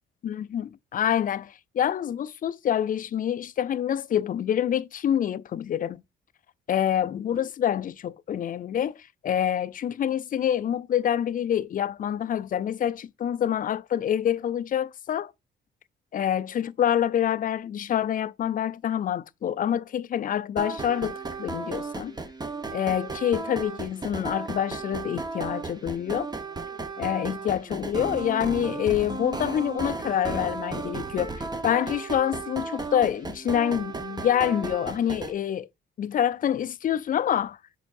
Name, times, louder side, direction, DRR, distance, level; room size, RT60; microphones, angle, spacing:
voice 1, 0.2-6.0 6.7-9.0 9.2-15.3 16.1-22.2 22.7-26.3 27.0-31.3 31.6-35.7 36.0-37.6, left 10 dB, 45° left, 0.4 m, -26 dB
sound 1, 20.6-35.3, right 3 dB, 20° right, 1.0 m, -34 dB
7.1 x 5.4 x 2.5 m
cardioid pair, 90°, 20 cm